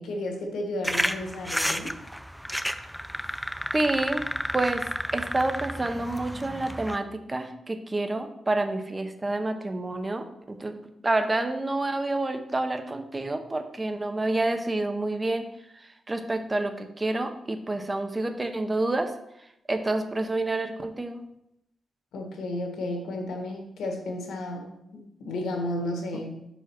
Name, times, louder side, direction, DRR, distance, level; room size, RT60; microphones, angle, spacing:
voice 1, 0.0-1.9 22.1-26.4, left 1 dB, 90° left, 3 dB, 1.5 m, -33 dB
sound 1, 0.8-7.0, equal, ahead, 0.4 m, -31 dB
voice 2, 3.7-4.2 4.5-15.5 15.7-19.2 19.7-21.2 26.1-26.2, right 2 dB, 20° right, 7 dB, 0.7 m, -28 dB
5.3 x 5.0 x 6.0 m, 0.82 s
cardioid pair, 120°, 0 cm